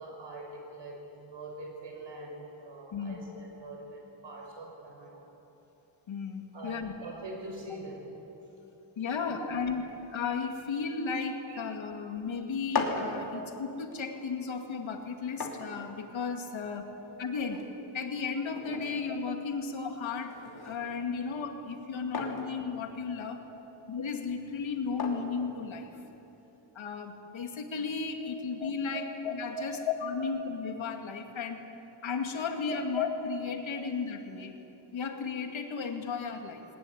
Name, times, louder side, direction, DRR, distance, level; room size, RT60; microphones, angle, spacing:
voice 1, 0.0-5.3 6.5-8.3 9.2-9.5 11.4-11.8 13.3-13.5 16.9-17.0 21.1-21.2 23.2-23.6 28.2-28.4 28.9-29.1 29.6-29.8 32.7-32.8 33.6-33.8, right 2 dB, 70° right, 0 dB, 6.3 m, -43 dB
voice 2, 2.9-3.2 6.1-6.9 9.0-16.9 17.2-17.7 17.9-20.4 20.6-23.4 23.9-25.9 26.7-31.6 32.0-34.5 34.9-36.6, left 5 dB, 90° left, 4 dB, 2.3 m, -34 dB
sound 1, 12.5-26.3, left 3 dB, 55° left, 2.9 m, -41 dB
20.0 x 19.0 x 9.9 m, 3.0 s
wide cardioid pair, 150°, 46 cm